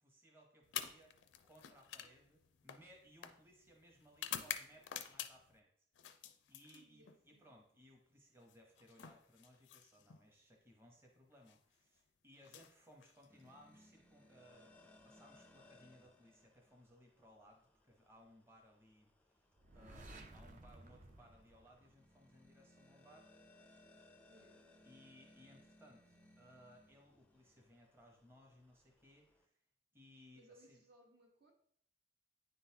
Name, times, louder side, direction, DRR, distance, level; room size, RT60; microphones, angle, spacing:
voice 1, 0.0-5.9 6.2-19.5 19.7-23.3 24.8-29.6 29.9-30.8, equal, 15° right, 0 dB, 0.8 m, -64 dB
sound 1, 0.6-5.6 6.0-7.2 8.4-10.2 11.3-11.6 12.4-13.5, left 9 dB, 80° left, 0.4 m, -48 dB
voice 2, 6.7-7.6 24.3-24.7 30.4-31.5, right 1 dB, 60° right, 1 dB, 1.2 m, -66 dB
sound 2, 13.3-29.5, left 1 dB, 10° left, 0.4 m, -67 dB
sound 3, 19.6-22.4, right 1 dB, 45° right, 0.5 m, -57 dB
9.6 x 3.8 x 2.8 m, 0.66 s
head